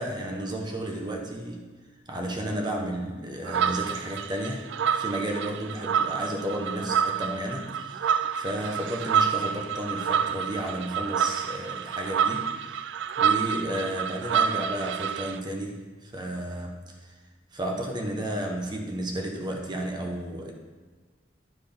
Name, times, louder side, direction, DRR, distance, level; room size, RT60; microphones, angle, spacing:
voice 1, 0.0-1.7 2.1-17.1 17.5-20.5, right 1 dB, 20° right, 1 dB, 1.1 m, -33 dB
Funky Goose, 3.4-15.4, right 7 dB, 70° right, 0.3 m, -28 dB
11.5 x 4.7 x 5.4 m, 1.4 s
head